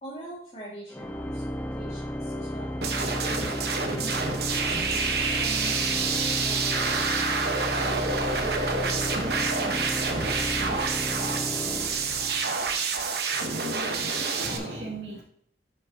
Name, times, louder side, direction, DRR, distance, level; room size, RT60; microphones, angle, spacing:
voice 1, 0.0-2.7 3.5-7.3 7.8-11.8, right 2 dB, 35° left, -6 dB, 1.9 m, -44 dB
Organ, 0.9-12.7, equal, 10° left, 0.4 m, -33 dB
sound 1, 2.8-14.6, right 4 dB, 60° right, 1.0 m, -28 dB
voice 2, 13.3-15.2, right 1 dB, 80° right, -3 dB, 2.2 m, -37 dB
9.7 x 5.8 x 2.7 m, 0.63 s
head